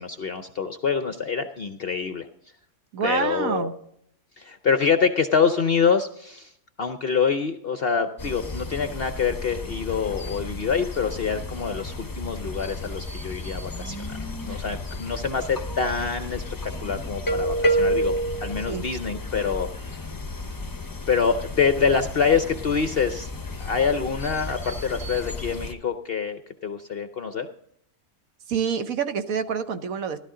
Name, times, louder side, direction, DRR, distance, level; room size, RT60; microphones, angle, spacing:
voice 1, 0.0-2.3 3.0-3.7 4.4-6.5 6.8-14.2 14.4-16.4 16.8-18.1 18.4-20.1 21.1-23.3 23.6-27.5, left 6 dB, 55° left, 8 dB, 0.7 m, -25 dB
voice 2, 2.9-3.7 14.5-14.6 18.7-18.8 28.5-30.2, right 6 dB, 65° right, 9 dB, 1.3 m, -27 dB
sound 1, 8.2-25.7, equal, 20° left, 0.6 m, -31 dB
14.0 x 12.5 x 3.8 m, 0.71 s
omnidirectional pair, 1.6 m